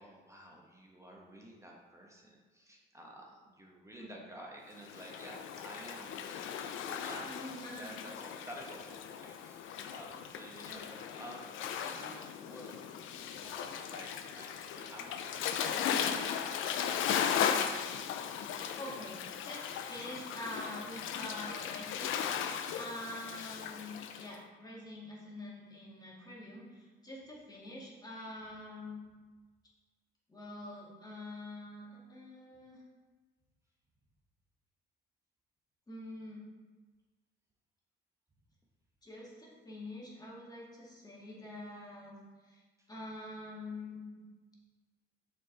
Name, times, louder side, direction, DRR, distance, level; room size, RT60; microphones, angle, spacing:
voice 1, 0.0-7.3 7.8-17.9, right 1 dB, 15° right, -2 dB, 1.1 m, -51 dB
Waves surf, 4.8-24.3, left 8 dB, 80° left, 0.5 m, -37 dB
voice 2, 7.3-8.0 10.7-11.0 15.9-16.1 18.8-29.0 30.3-32.8 35.9-36.4 39.0-42.2 42.4-42.6 42.9-44.2, left 1 dB, 20° left, -5 dB, 1.9 m, -46 dB
6.2 x 4.6 x 4.0 m, 1.4 s
cardioid pair, 90°, 20 cm